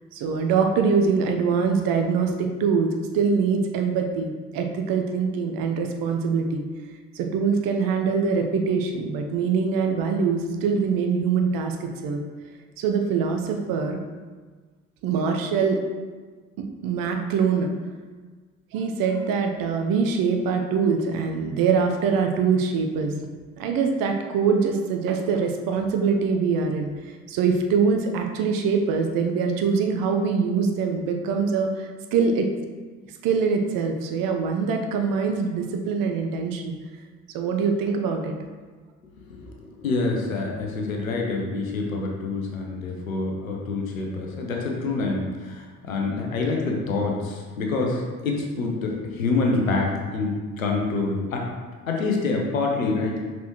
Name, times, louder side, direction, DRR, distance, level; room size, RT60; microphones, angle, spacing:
voice 1, 0.1-6.6 7.1-12.2 12.8-14.0 15.0-15.8 16.8-17.7 18.7-26.9 27.3-32.5 33.2-36.7 37.3-38.3, right 5 dB, 60° right, 4 dB, 0.9 m, -23 dB
voice 2, 39.4-51.5 51.9-53.2, left 3 dB, 85° left, 0 dB, 0.9 m, -26 dB
6.1 x 5.8 x 3.1 m, 1.4 s
figure-of-eight pair, 50°, 39 cm